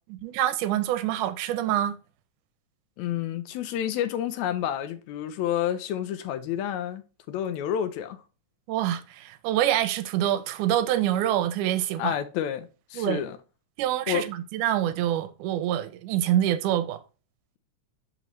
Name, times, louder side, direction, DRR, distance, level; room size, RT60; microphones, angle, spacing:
voice 1, 0.2-2.0 8.7-12.1 13.0-13.2 13.8-17.0, right 12 dB, 85° right, 2.1 m, -26 dB
voice 2, 3.0-8.2 12.0-13.4 14.1-14.3, left 10 dB, 80° left, 1.8 m, -29 dB
5.9 x 5.2 x 3.1 m
omnidirectional pair, 3.6 m